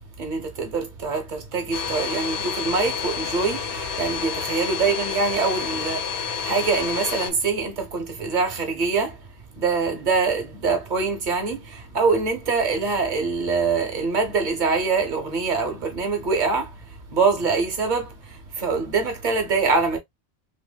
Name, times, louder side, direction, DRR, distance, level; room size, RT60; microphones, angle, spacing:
voice 1, 0.2-9.2 9.6-16.7 17.1-20.0, right 4 dB, 50° right, 1.1 m, -24 dB
Domestic sounds home sounds, 1.7-7.3, left 6 dB, 80° left, 1.3 m, -29 dB
3.2 x 3.1 x 2.2 m
omnidirectional pair, 1.1 m